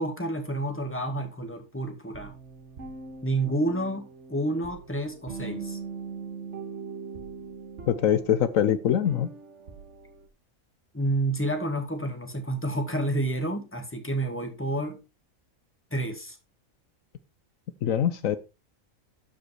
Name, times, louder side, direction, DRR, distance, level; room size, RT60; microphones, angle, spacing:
voice 1, 0.0-2.3 3.2-5.8 10.9-15.0 15.9-16.4, right 1 dB, 10° left, 1.9 m, -29 dB
sound 1, 2.1-10.3, right 5 dB, 55° right, 1.8 m, -41 dB
voice 2, 7.9-9.3 17.8-18.4, left 9 dB, 75° left, 1.1 m, -23 dB
13.0 x 5.1 x 4.5 m
omnidirectional pair, 1.4 m